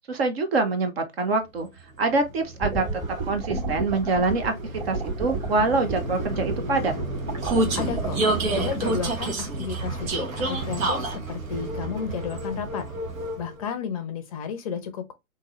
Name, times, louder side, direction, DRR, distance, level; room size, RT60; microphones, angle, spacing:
voice 1, 0.1-1.7 2.0-2.9 3.3-4.6 4.9-6.9, right 3 dB, 45° right, 0.9 m, -25 dB
Vehicle, 1.8-13.6, right 2 dB, 70° right, 1.3 m, -30 dB
sound 1, 2.6-9.1, right 3 dB, 20° right, 2.2 m, -31 dB
voice 2, 7.7-8.2 8.5-12.9 13.4-15.1, left 7 dB, 25° left, 0.6 m, -32 dB
3.7 x 2.8 x 3.0 m
hypercardioid pair, 135°, 42 cm